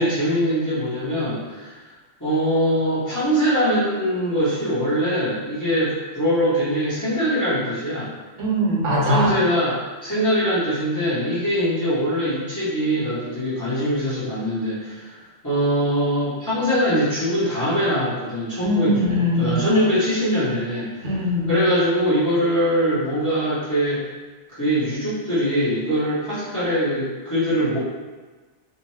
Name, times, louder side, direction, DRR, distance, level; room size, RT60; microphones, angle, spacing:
voice 1, 0.0-1.7 2.2-8.1 9.0-15.1 15.4-19.0 19.4-20.9 21.5-24.0 24.5-27.8, equal, 20° left, -11 dB, 0.7 m, -22 dB
voice 2, 8.4-9.3 18.6-19.6 21.0-21.6, left 1 dB, 75° right, -4 dB, 1.0 m, -21 dB
2.7 x 2.1 x 3.0 m, 1.3 s
omnidirectional pair, 1.3 m